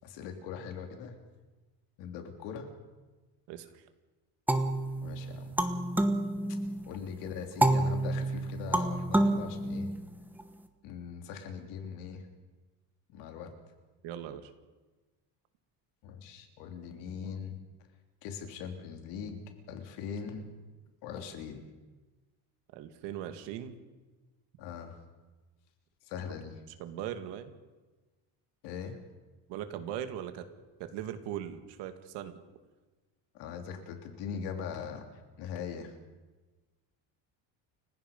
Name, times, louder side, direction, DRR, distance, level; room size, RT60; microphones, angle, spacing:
voice 1, 0.0-1.2 2.0-2.7 5.0-5.5 6.8-9.9 10.8-12.2 13.1-13.5 16.0-17.6 18.2-20.5 21.0-21.6 24.6-25.0 26.0-26.6 28.6-29.0 33.3-35.1 35.4-35.9, left 7 dB, 85° left, 5 dB, 3.5 m, -41 dB
voice 2, 3.5-3.8 14.0-14.5 22.7-23.8 26.3-26.4 26.8-27.5 29.5-30.5 30.8-32.4, right 10 dB, 75° right, 8 dB, 2.3 m, -39 dB
sound 1, 4.5-7.0 7.6-10.4, right 1 dB, 5° right, 1.1 m, -29 dB
29.5 x 16.5 x 5.4 m, 1.2 s
cardioid pair, 170°, 42 cm